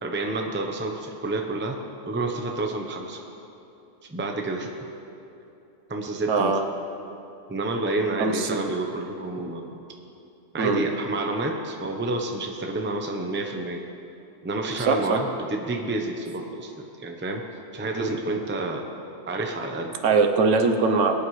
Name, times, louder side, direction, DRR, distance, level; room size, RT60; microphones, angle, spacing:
voice 1, 0.0-1.8 2.1-3.2 4.1-4.7 5.9-6.6 7.5-9.7 10.5-13.8 14.4-17.4 17.7-18.8 19.3-19.9, right 2 dB, 10° right, 2 dB, 0.7 m, -29 dB
voice 2, 6.3-6.6 8.2-8.6 10.6-10.8 14.8-15.2 20.0-21.1, right 4 dB, 80° right, 4 dB, 1.2 m, -21 dB
23.5 x 8.9 x 3.2 m, 2.9 s
omnidirectional pair, 1.2 m